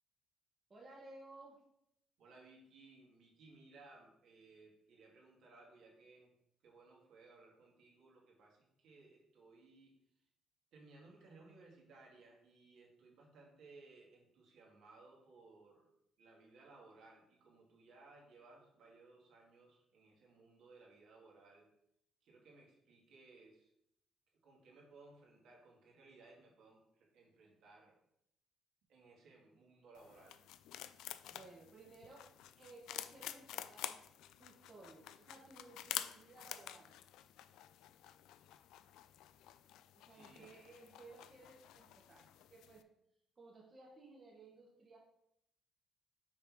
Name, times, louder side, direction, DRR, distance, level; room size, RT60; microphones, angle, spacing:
voice 1, 0.7-1.6 31.3-32.3 32.6-34.0 34.4-36.9 39.9-42.8 43.4-45.0, right 2 dB, 25° right, -3 dB, 1.1 m, -58 dB
voice 2, 2.2-6.3 6.6-10.0 10.7-15.9 16.2-21.7 22.2-23.7 24.4-28.0 28.9-30.4 40.1-40.5, right 3 dB, 70° right, -2 dB, 2.0 m, -61 dB
sound 1, 30.0-42.8, left 12 dB, 90° left, 0.3 m, -49 dB
5.8 x 4.1 x 4.6 m, 0.77 s
cardioid pair, 145°, 0 cm